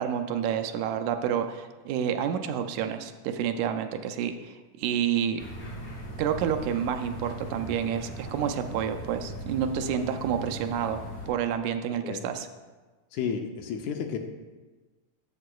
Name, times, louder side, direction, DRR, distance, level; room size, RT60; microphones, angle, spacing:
voice 1, 0.0-5.4 6.2-12.5, right 8 dB, 80° right, 7 dB, 1.9 m, -29 dB
sound 1, 5.4-11.3, right 1 dB, 40° left, 2.7 m, -39 dB
voice 2, 13.1-14.2, left 7 dB, 80° left, 4 dB, 1.8 m, -32 dB
11.0 x 7.5 x 2.3 m, 1.3 s
omnidirectional pair, 3.4 m